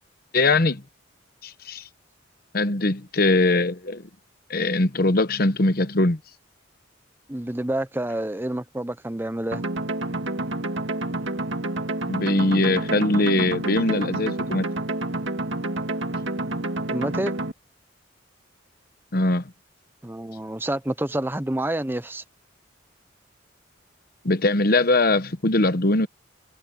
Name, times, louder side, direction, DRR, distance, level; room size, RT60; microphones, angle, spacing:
voice 1, 0.3-0.8 1.4-1.8 2.5-4.0 4.5-6.2 12.1-14.7 19.1-19.4 24.2-26.1, left 2 dB, 50° left, 1.0 m, -21 dB
voice 2, 7.3-9.6 16.9-17.3 20.0-22.2, right 1 dB, 10° right, 0.7 m, -28 dB
sound 1, 9.5-17.5, right 2 dB, 70° right, 2.0 m, -28 dB
head